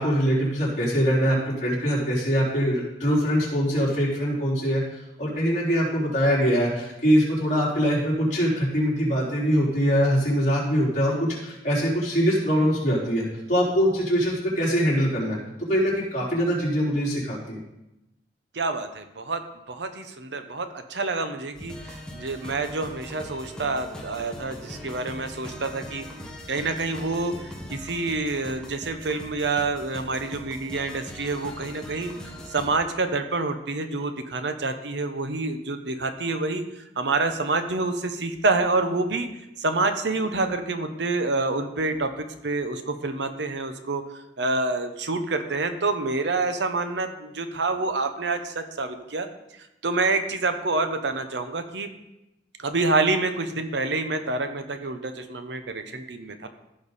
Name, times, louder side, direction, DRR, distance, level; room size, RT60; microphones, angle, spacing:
voice 1, 0.0-4.8 5.2-15.4 15.7-17.6, equal, 40° left, -7 dB, 4.3 m, -23 dB
voice 2, 18.5-19.4 19.7-26.0 26.5-27.3 27.7-32.1 32.5-36.6 37.0-39.3 39.6-44.0 44.4-49.3 49.8-51.9 52.6-56.5, right 3 dB, 80° right, 8 dB, 0.8 m, -27 dB
sound 1, 21.5-32.7, left 1 dB, 5° left, 1.4 m, -41 dB
15.0 x 5.2 x 4.2 m, 0.92 s
head